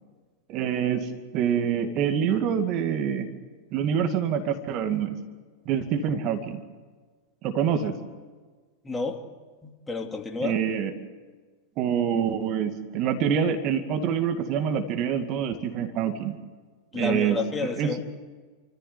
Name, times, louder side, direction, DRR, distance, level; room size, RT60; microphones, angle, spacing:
voice 1, 0.5-3.3 3.7-5.2 5.7-6.6 7.4-7.9 10.4-10.9 11.8-16.4 16.9-17.4 17.8-18.0, right 8 dB, 45° right, 7 dB, 2.4 m, -26 dB
voice 2, 8.8-9.2 9.6-10.6 16.9-18.0, left 3 dB, 15° left, 3 dB, 2.7 m, -30 dB
28.0 x 14.5 x 9.5 m, 1.4 s
hypercardioid pair, 90°, 0 cm